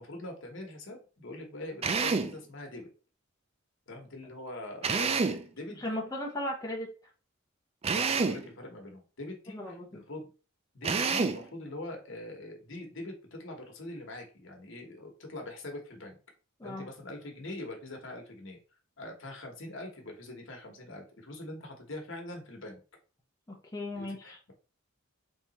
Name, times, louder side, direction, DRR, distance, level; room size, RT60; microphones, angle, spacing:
voice 1, 0.0-2.9 3.9-6.0 7.9-10.3 10.7-16.2 16.6-18.6 19.0-22.8 23.9-24.5, left 1 dB, 65° left, 2 dB, 1.2 m, -43 dB
Drill, 1.8-2.4 4.8-5.5 7.8-8.5 10.8-11.5, right 4 dB, 30° right, 0.3 m, -28 dB
voice 2, 5.8-6.9 9.5-10.0 16.6-16.9 23.5-24.4, left 1 dB, 15° left, -1 dB, 0.7 m, -36 dB
3.6 x 2.9 x 4.1 m, 0.36 s
head